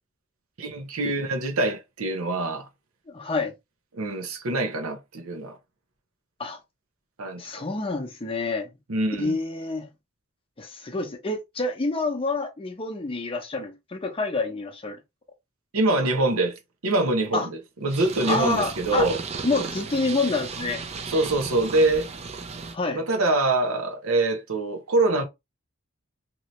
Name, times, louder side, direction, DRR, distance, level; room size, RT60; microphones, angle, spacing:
voice 1, 0.6-2.7 3.9-5.6 7.2-7.4 8.9-9.4 15.7-19.2 21.1-22.1 22.9-25.2, right 2 dB, 85° right, 0.8 m, -24 dB
voice 2, 3.1-3.5 6.4-6.6 7.4-8.7 9.2-9.9 10.6-15.0 17.3-17.5 18.3-19.1 19.4-20.9 22.7-23.0, left 3 dB, 25° left, 0.7 m, -28 dB
Purr, 17.9-22.8, right 4 dB, 30° right, 0.4 m, -35 dB
2.9 x 2.7 x 3.0 m
head